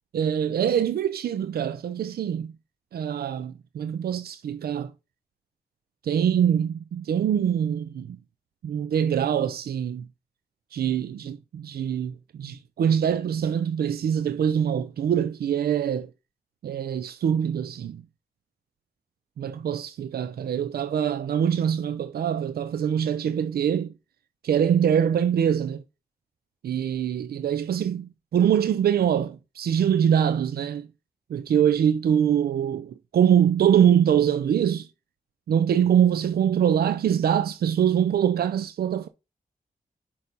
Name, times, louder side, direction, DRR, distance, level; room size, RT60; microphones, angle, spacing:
voice 1, 0.1-2.5 2.9-4.9 6.0-8.2 8.6-10.1 10.7-16.1 16.6-18.0 19.4-23.9 24.4-25.8 26.6-30.9 31.3-34.9 35.5-39.1, right 9 dB, 85° right, 0.5 m, -24 dB
6.5 x 5.3 x 5.4 m
wide cardioid pair, 95°, 16 cm